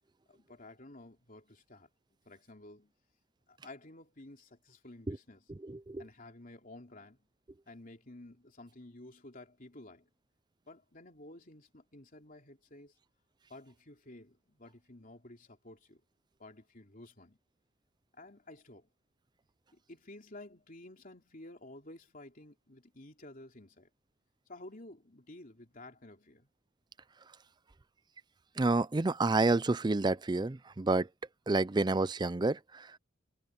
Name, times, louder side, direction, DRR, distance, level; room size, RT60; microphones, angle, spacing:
voice 1, 0.3-1.9 2.2-2.9 3.5-5.5 6.0-7.2 7.7-10.1 10.7-12.9 13.5-16.0 16.4-17.4 18.1-18.9 19.7-23.9 24.5-26.5, left 2 dB, 40° left, 3.3 m, -52 dB
voice 2, 5.6-6.0 28.6-31.1 31.5-33.0, right 2 dB, 20° right, 0.4 m, -29 dB
head